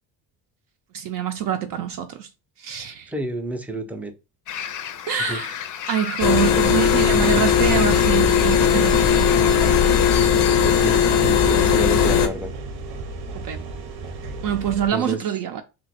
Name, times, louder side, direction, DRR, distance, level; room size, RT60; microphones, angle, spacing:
voice 1, 0.9-2.3 2.6-3.1 5.1-5.6 5.9-9.3 13.3-13.6 14.4-15.6, right 9 dB, 60° right, 0.5 m, -25 dB
voice 2, 3.1-4.1 4.5-4.7 5.2-5.4 10.6-12.5 14.9-15.2, right 2 dB, 5° right, 0.4 m, -30 dB
sound 1, 4.5-10.2, left 9 dB, 50° left, 0.5 m, -33 dB
sound 2, 6.2-12.3, left 8 dB, 90° left, 0.7 m, -18 dB
sound 3, 7.1-14.9, right 3 dB, 90° right, 0.8 m, -34 dB
2.5 x 2.2 x 4.0 m
cardioid pair, 105°, 38 cm